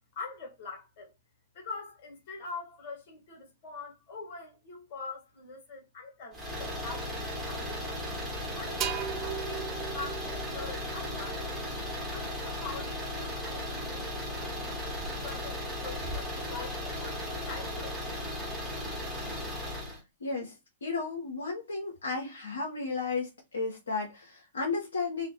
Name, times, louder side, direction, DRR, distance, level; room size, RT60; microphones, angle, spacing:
voice 1, 0.1-1.1 1.5-8.0 8.6-11.6 12.1-18.0, left 4 dB, 45° left, 1.0 m, -44 dB
sound 1, 6.3-20.0, left 1 dB, 10° right, 1.0 m, -36 dB
Volt Dose, 8.8-12.4, right 9 dB, 30° right, 0.3 m, -39 dB
voice 2, 20.2-20.5 20.8-25.3, left 4 dB, 75° left, 0.6 m, -33 dB
2.4 x 2.1 x 2.5 m
figure-of-eight pair, 110°, 0 cm